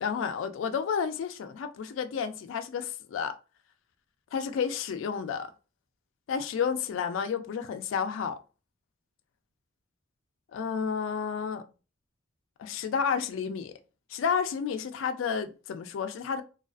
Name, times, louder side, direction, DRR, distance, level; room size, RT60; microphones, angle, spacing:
voice 1, 0.0-3.3 4.3-5.5 6.3-8.4 10.5-11.6 12.6-13.7 14.1-16.4, left 6 dB, 70° left, 0.3 m, -31 dB
2.3 x 2.3 x 2.3 m
head